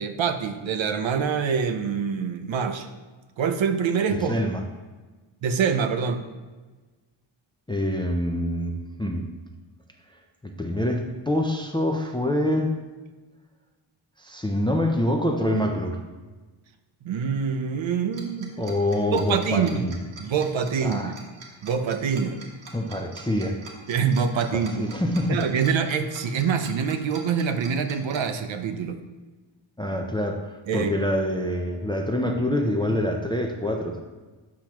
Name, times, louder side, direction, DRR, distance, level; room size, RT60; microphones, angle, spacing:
voice 1, 0.0-2.9 3.4-4.4 5.4-6.2 17.0-18.5 19.1-19.8 20.2-21.1 21.6-22.4 23.9-24.9 25.3-29.0 30.7-30.9, right 6 dB, 70° right, 8 dB, 0.7 m, -25 dB
voice 2, 4.1-4.6 7.7-9.3 10.4-12.8 14.2-16.0 18.6-20.0 20.8-21.1 22.7-23.6 24.5-25.4 29.8-34.0, left 1 dB, 10° left, 2 dB, 0.4 m, -26 dB
Tick-tock, 18.1-28.2, right 4 dB, 90° right, 1.4 m, -44 dB
8.5 x 5.9 x 3.0 m, 1.3 s
wide cardioid pair, 170°, 48 cm